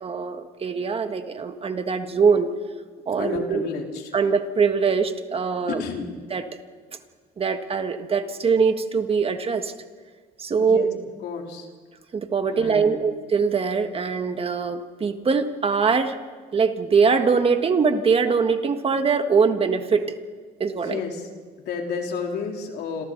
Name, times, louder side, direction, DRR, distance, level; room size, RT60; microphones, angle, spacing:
voice 1, 0.0-2.5 3.1-3.6 4.1-5.8 6.3-6.4 7.4-9.7 10.4-10.9 12.1-16.2 16.5-20.2 20.6-21.0, right 5 dB, 35° right, 7 dB, 1.6 m, -22 dB
voice 2, 3.2-4.1 5.7-6.1 10.6-10.9 11.2-11.7 12.4-13.1 20.7-21.3 21.7-23.0, left 5 dB, 70° left, 1 dB, 3.5 m, -31 dB
27.5 x 27.0 x 4.0 m, 1.5 s
cardioid pair, 110°, 17 cm